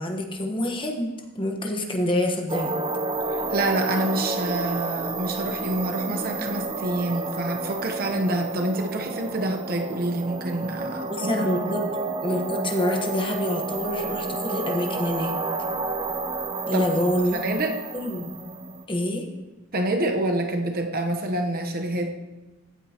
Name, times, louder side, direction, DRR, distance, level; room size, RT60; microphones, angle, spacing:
voice 1, 0.0-2.8 11.1-11.8 12.2-15.4 16.6-17.4 17.9-18.3 18.9-19.2, left 1 dB, 25° left, 3 dB, 1.2 m, -26 dB
sound 1, 2.5-18.8, right 3 dB, 25° right, 0.6 m, -30 dB
voice 2, 3.3-11.8 16.7-16.9 17.2-17.8 19.7-22.1, right 1 dB, 45° right, 4 dB, 1.0 m, -27 dB
16.0 x 9.2 x 2.9 m, 1.1 s
head